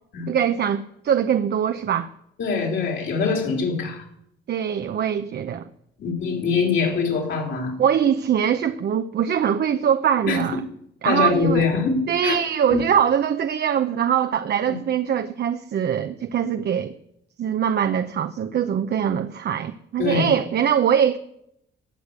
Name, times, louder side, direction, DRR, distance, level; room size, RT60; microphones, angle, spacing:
voice 1, 0.3-2.1 4.5-5.7 7.8-10.6 11.0-11.7 12.1-16.9 17.4-21.2, right 8 dB, 55° right, 0.7 m, -22 dB
voice 2, 2.4-4.0 6.0-7.8 10.3-10.6 11.0-12.4 12.7-12.8 20.0-20.3, left 5 dB, 75° left, 4.1 m, -23 dB
18.0 x 6.6 x 8.0 m
cardioid pair, 90°, 20 cm